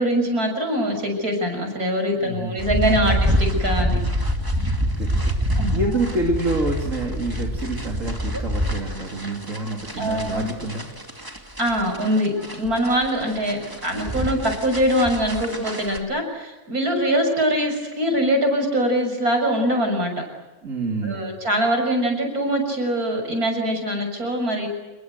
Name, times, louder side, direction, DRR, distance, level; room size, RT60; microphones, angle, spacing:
voice 1, 0.0-4.0 5.6-5.8 10.0-10.5 11.6-20.1 21.0-24.7, equal, 80° right, 4 dB, 7.2 m, -23 dB
voice 2, 2.1-2.6 2.8-3.2 4.8-10.9 20.6-21.3, right 2 dB, 60° right, 0 dB, 3.3 m, -28 dB
sound 1, 2.6-16.0, equal, 15° right, 2.4 m, -26 dB
28.0 x 22.0 x 8.1 m, 1.1 s
omnidirectional pair, 1.6 m